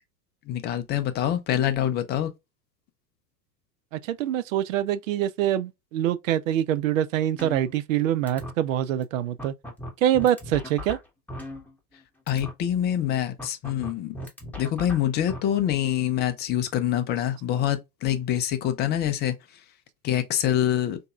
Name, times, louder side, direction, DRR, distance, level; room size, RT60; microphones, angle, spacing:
voice 1, 0.5-2.3 12.3-14.2 14.6-19.3 20.0-21.0, left 11 dB, 25° left, 0.4 m, -25 dB
voice 2, 3.9-9.5 10.0-11.0, right 11 dB, 60° right, 0.5 m, -25 dB
sound 1, 7.4-8.0 8.3-8.5 9.0-9.1 9.4-12.0 12.3-12.5 13.4-15.4, left 1 dB, 5° left, 1.0 m, -37 dB
3.9 x 2.7 x 2.3 m
figure-of-eight pair, 85°, 47 cm